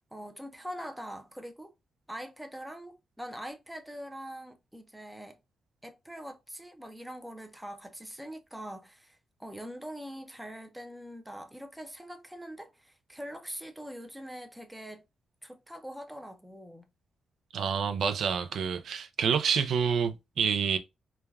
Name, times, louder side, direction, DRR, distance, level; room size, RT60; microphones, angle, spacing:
voice 1, 0.0-1.7 2.1-5.4 5.8-15.0 15.4-16.9, equal, 5° right, 0.5 m, -43 dB
voice 2, 17.5-20.8, right 6 dB, 70° right, 0.3 m, -28 dB
3.2 x 2.2 x 2.2 m
cardioid pair, 115°, 0 cm